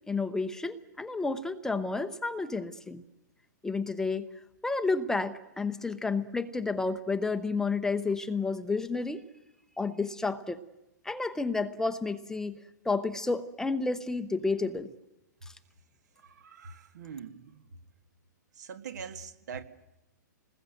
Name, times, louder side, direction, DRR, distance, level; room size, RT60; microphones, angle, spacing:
voice 1, 0.1-3.0 3.6-4.3 4.6-9.2 9.8-10.6 11.0-14.9, left 3 dB, 5° left, 0.8 m, -31 dB
voice 2, 16.2-17.8 18.5-19.6, right 6 dB, 65° right, 1.8 m, -43 dB
26.5 x 20.5 x 7.8 m
hypercardioid pair, 135°, 10 cm